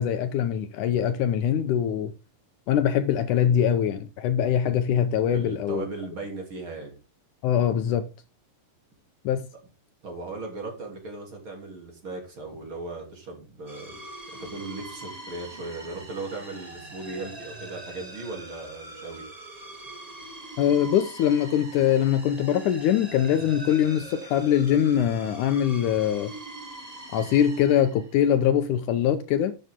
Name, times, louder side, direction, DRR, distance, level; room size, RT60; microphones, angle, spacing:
voice 1, 0.0-2.1 2.7-5.9 7.4-8.1 9.3-9.5 20.6-26.3 27.1-29.5, left 9 dB, 75° left, 2.1 m, -23 dB
voice 2, 5.3-7.0 10.0-14.0 14.4-19.3, right 3 dB, 35° right, 3.7 m, -37 dB
sound 1, 13.7-28.4, right 2 dB, 15° right, 1.2 m, -43 dB
12.0 x 7.9 x 3.7 m
omnidirectional pair, 4.0 m